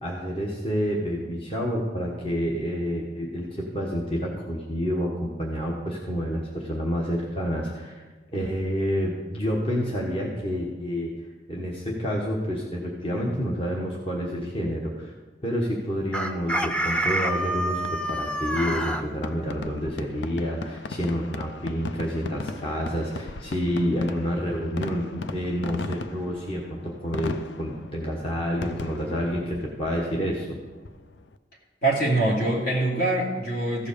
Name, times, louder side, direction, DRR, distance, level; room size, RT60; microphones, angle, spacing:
voice 1, 0.0-8.0 8.3-11.1 11.5-15.1 15.4-30.6, equal, 35° left, -2 dB, 1.3 m, -29 dB
Chicken rooster, 16.1-19.0, right 1 dB, 5° left, 0.7 m, -27 dB
Fireworks, 17.8-31.4, left 3 dB, 85° left, 0.5 m, -38 dB
voice 2, 31.8-33.9, right 2 dB, 65° left, -2 dB, 2.6 m, -24 dB
15.0 x 5.1 x 6.7 m, 1.3 s
head